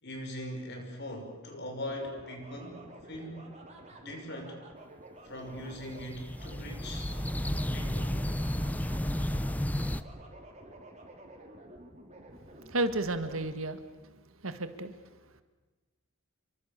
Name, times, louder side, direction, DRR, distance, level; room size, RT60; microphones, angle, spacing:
voice 1, 0.0-3.5 4.0-4.6 5.2-7.1 7.7-8.2, left 1 dB, 55° left, 3 dB, 6.1 m, -41 dB
sound 1, 1.9-13.5, right 1 dB, 35° right, 4.4 m, -51 dB
sound 2, 5.6-10.0, left 1 dB, 10° left, 0.7 m, -32 dB
voice 2, 12.7-13.8 14.4-14.9, right 2 dB, 85° right, 10 dB, 1.8 m, -31 dB
28.0 x 24.0 x 6.9 m, 1.2 s
head